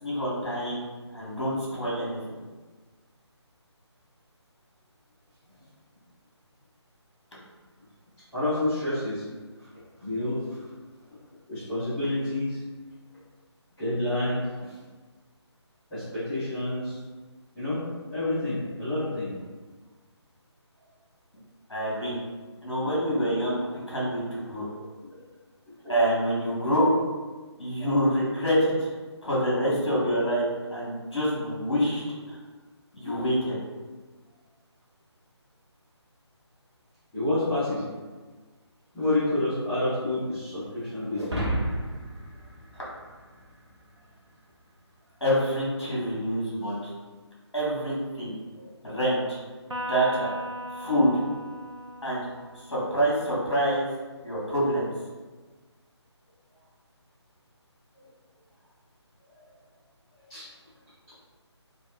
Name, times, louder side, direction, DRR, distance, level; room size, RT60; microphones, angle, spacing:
voice 1, 0.0-0.8 1.1-2.2 21.7-22.1 22.6-23.6 23.9-24.7 25.9-26.9 27.6-28.9 29.2-32.0 32.3-32.4 32.9-33.6 45.2-46.8 47.5-48.3 48.8-49.4 49.9-50.3 50.7-51.2 52.0-52.3 52.7-53.9 54.2-54.8, equal, 65° left, -6 dB, 1.0 m, -26 dB
voice 2, 8.3-9.2 10.0-10.4 11.5-12.6 13.8-14.7 15.9-17.0 17.5-19.3 24.6-24.7 25.8-25.9 27.8-28.0 37.1-37.8 38.9-41.2 48.6-48.7 59.3-59.4 60.3-60.5, left 1 dB, 5° left, -17 dB, 0.7 m, -29 dB
sound 1, 41.2-43.7, right 1 dB, 70° right, 0.8 m, -31 dB
Electric guitar, 49.7-53.2, equal, 85° right, 0.4 m, -37 dB
2.9 x 2.0 x 2.2 m, 1.3 s
figure-of-eight pair, 150°, 15 cm